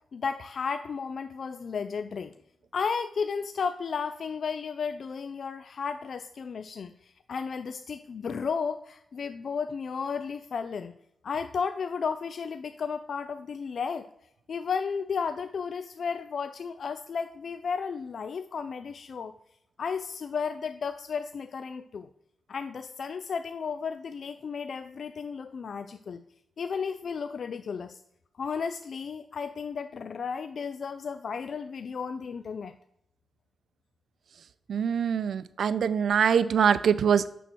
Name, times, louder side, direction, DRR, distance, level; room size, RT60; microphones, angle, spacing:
voice 1, 0.1-2.3 2.7-10.9 11.2-14.1 14.5-19.3 19.8-22.1 22.5-26.2 26.6-28.0 28.4-32.7, left 6 dB, 60° left, 9 dB, 0.3 m, -33 dB
voice 2, 34.7-37.3, right 7 dB, 75° right, 15 dB, 0.3 m, -24 dB
6.9 x 6.1 x 5.9 m, 0.79 s
wide cardioid pair, 120°, 0 cm